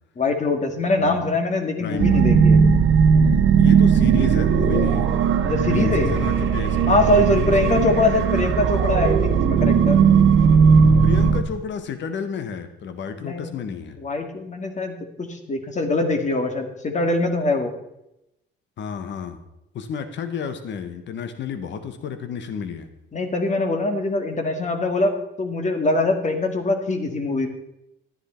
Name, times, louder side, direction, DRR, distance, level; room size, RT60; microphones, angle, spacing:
voice 1, 0.2-2.6 5.4-6.2 6.9-10.0 13.2-13.6 14.0-17.7 23.1-27.5, left 2 dB, 35° left, 5 dB, 2.0 m, -23 dB
voice 2, 1.8-2.3 3.6-5.1 5.7-7.9 11.0-14.0 18.8-19.4 19.7-22.9, left 6 dB, 65° left, 9 dB, 1.3 m, -31 dB
sound 1, 2.0-11.4, right 6 dB, 80° right, 1.2 m, -17 dB
12.5 x 9.9 x 4.4 m, 0.85 s
cardioid pair, 90°, 20 cm